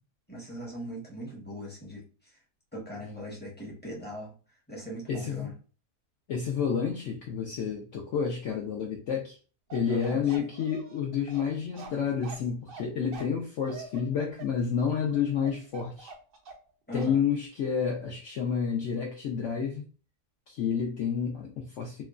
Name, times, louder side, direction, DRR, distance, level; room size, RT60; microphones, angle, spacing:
voice 1, 0.3-2.0 2.7-4.3 4.7-5.5 9.9-10.5 16.9-17.2, equal, 10° left, -4 dB, 0.5 m, -40 dB
voice 2, 5.1-5.5 6.3-9.4 9.7-16.1 16.9-19.8 20.5-22.0, left 7 dB, 70° left, -1 dB, 0.7 m, -30 dB
Bark, 9.7-16.7 17.0-17.2, right 5 dB, 85° right, 0.4 m, -45 dB
2.9 x 2.2 x 2.3 m, 0.37 s
omnidirectional pair, 1.7 m